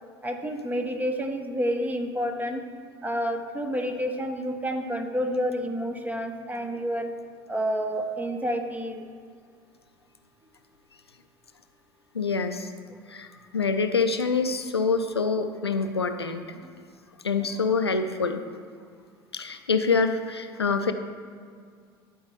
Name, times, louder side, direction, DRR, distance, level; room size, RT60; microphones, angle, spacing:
voice 1, 0.2-2.6 3.0-7.1 7.5-9.0, equal, 10° right, 5 dB, 0.8 m, -29 dB
voice 2, 12.1-12.7 13.1-13.3 13.5-16.4 17.2-18.4 19.3-20.9, left 4 dB, 90° left, 7 dB, 0.5 m, -25 dB
11.5 x 4.3 x 3.4 m, 2.1 s
figure-of-eight pair, 70°, 13 cm